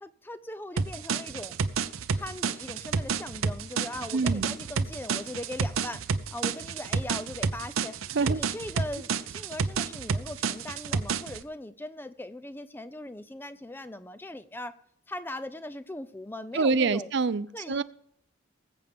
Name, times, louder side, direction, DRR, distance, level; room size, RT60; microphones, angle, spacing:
voice 1, 0.0-1.6 2.2-6.0 6.3-7.9 8.2-14.7 15.1-17.1 17.5-17.8, left 1 dB, 10° left, 0.5 m, -39 dB
sound 1, 0.8-11.4, right 5 dB, 85° right, 0.7 m, -30 dB
voice 2, 4.1-4.6 8.1-8.4 16.5-17.8, right 4 dB, 55° right, 0.5 m, -26 dB
20.0 x 8.2 x 3.6 m
head